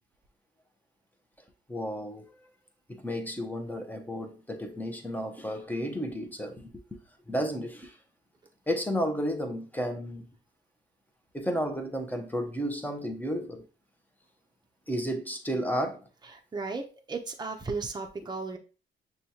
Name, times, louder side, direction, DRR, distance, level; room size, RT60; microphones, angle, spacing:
voice 1, 1.7-2.3 2.9-6.7 7.3-7.9 8.7-10.3 11.3-13.6 14.9-16.0, equal, 10° left, 0.8 m, -32 dB
voice 2, 16.5-18.6, right 4 dB, 20° right, 0.7 m, -35 dB
6.1 x 2.3 x 2.8 m
cardioid pair, 90°, 20 cm